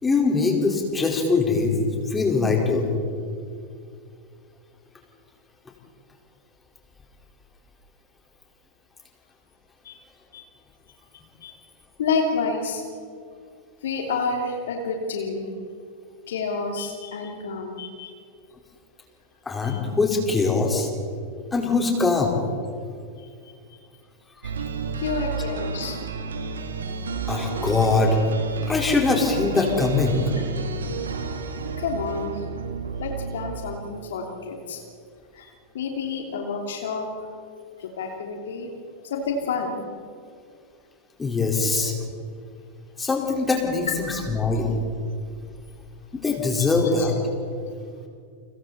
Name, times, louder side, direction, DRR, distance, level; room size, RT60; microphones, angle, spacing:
voice 1, 0.0-1.7 2.1-2.9 19.4-20.9 21.5-22.4 27.3-28.2 28.7-30.2 41.2-41.9 43.0-43.9 44.3-44.8 46.1-47.1, left 3 dB, 15° left, 0 dB, 4.7 m, -22 dB
voice 2, 12.0-12.8 13.8-15.5 16.3-18.1 19.6-19.8 23.2-23.3 24.9-26.0 30.2-30.3 31.8-32.5 33.0-34.8 35.3-37.1 37.8-38.7 39.0-39.8 41.7-41.9 43.9-44.0 47.0-47.2, left 4 dB, 60° left, 2 dB, 3.0 m, -29 dB
sound 1, 24.4-34.3, right 4 dB, 70° right, 1.9 m, -31 dB
30.0 x 25.5 x 4.3 m, 2.3 s
figure-of-eight pair, 90°, 0 cm